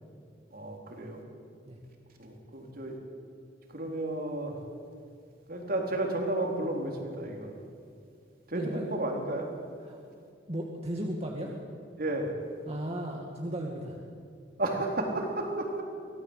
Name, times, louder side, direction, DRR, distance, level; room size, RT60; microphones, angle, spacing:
voice 1, 0.5-1.2 2.2-3.0 3.7-4.6 5.5-7.5 8.5-9.5 12.0-12.3 14.6-15.8, right 1 dB, 55° right, 1 dB, 4.0 m, -32 dB
voice 2, 10.5-11.5 12.7-14.0, right 1 dB, 35° right, 0 dB, 2.2 m, -35 dB
24.0 x 18.0 x 8.2 m, 2.4 s
head